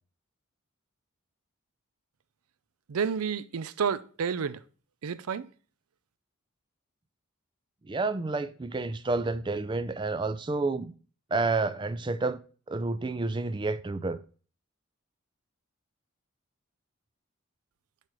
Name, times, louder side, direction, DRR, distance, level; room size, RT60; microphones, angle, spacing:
voice 1, 2.9-4.6 5.0-5.5, right 6 dB, 85° right, 0.5 m, -30 dB
voice 2, 7.9-10.9 11.3-12.4 12.7-14.2, right 3 dB, 20° right, 0.3 m, -29 dB
8.4 x 4.9 x 3.1 m
head